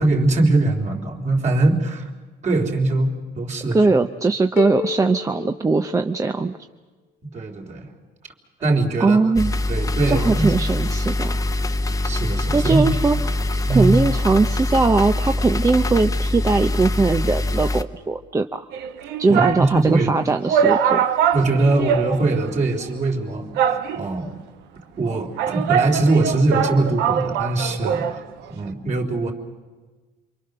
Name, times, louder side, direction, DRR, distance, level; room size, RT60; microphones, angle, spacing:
voice 1, 0.0-2.1 2.4-3.8 7.3-7.9 8.6-9.2 9.7-10.5 12.0-12.9 13.7-13.9 19.3-20.1 21.3-24.3 25.0-28.2 28.5-29.3, right 2 dB, 45° right, 2 dB, 3.7 m, -21 dB
voice 2, 3.7-6.6 9.0-9.5 10.1-11.4 12.5-13.4 13.7-18.7 19.2-21.0, right 3 dB, 20° right, 6 dB, 0.8 m, -20 dB
sound 1, 4.6-6.6, left 10 dB, 90° left, 2.1 m, -31 dB
sound 2, 9.4-17.8, left 2 dB, 20° left, 1.0 m, -23 dB
sound 3, 18.7-19.7 20.1-20.2 20.5-22.5 22.8-22.9 23.6-24.3 25.0-28.2 28.5-28.6, right 8 dB, 90° right, 1.3 m, -22 dB
27.5 x 24.0 x 6.7 m, 1.3 s
cardioid pair, 110°, 17 cm